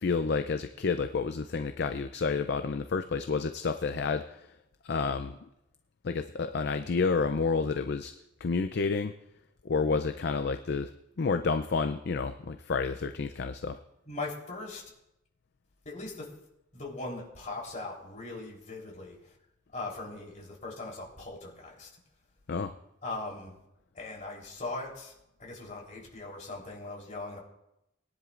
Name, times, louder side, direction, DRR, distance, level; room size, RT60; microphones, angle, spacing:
voice 1, 0.0-4.5 4.8-5.5 6.0-8.1 8.4-9.1 9.6-10.9 11.2-13.8 22.5-22.7, left 4 dB, 55° left, 9 dB, 0.5 m, -30 dB
voice 2, 14.1-14.8 15.9-16.3 16.7-19.4 19.7-21.9 23.0-23.6 23.9-25.1 25.4-27.4, left 2 dB, 40° left, -2 dB, 3.7 m, -40 dB
21.0 x 10.5 x 2.5 m, 0.87 s
head